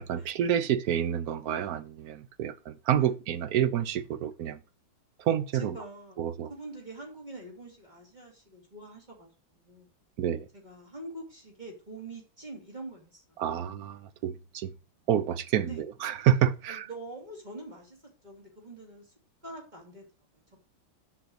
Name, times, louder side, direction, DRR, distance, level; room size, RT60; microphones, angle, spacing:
voice 1, 0.0-4.6 5.2-5.8 6.2-6.5 10.2-10.5 13.4-14.7 15.1-16.9, right 10 dB, 65° right, 1.1 m, -28 dB
voice 2, 5.5-9.9 10.5-13.7 15.6-15.8 16.7-18.0 18.2-19.1 19.4-20.0 20.3-20.6, right 2 dB, 25° right, 3.0 m, -45 dB
7.9 x 6.0 x 6.4 m
omnidirectional pair, 2.0 m